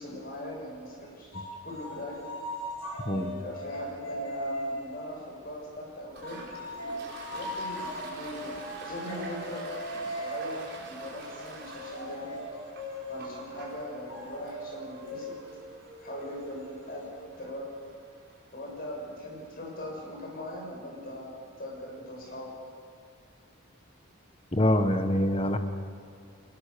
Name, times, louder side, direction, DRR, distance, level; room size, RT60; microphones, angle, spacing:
voice 1, 0.0-2.2 3.1-6.4 7.3-12.3 13.1-15.3 16.0-17.7 18.5-22.5, left 1 dB, 40° left, -1 dB, 6.8 m, -40 dB
sound 1, 1.3-5.2 6.2-17.5, equal, 75° left, 6.0 m, -39 dB
Toilet flush, 6.1-19.4, right 3 dB, 50° right, 5.2 m, -48 dB
voice 2, 24.5-25.6, left 1 dB, 25° left, 7 dB, 1.2 m, -25 dB
22.5 x 20.0 x 6.9 m, 2.5 s
head